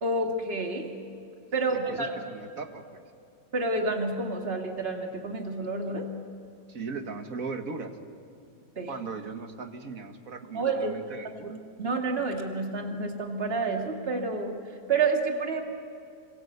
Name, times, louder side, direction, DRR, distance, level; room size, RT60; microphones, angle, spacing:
voice 1, 0.0-1.0 1.5-2.1 3.5-6.1 8.8-8.9 10.5-10.9 11.5-14.6 14.9-15.6, right 3 dB, 35° right, 3 dB, 2.6 m, -29 dB
voice 2, 2.0-3.0 5.9-6.0 6.7-7.9 8.9-11.6, right 4 dB, 50° right, 6 dB, 2.2 m, -38 dB
27.0 x 26.0 x 8.2 m, 2.5 s
omnidirectional pair, 1.9 m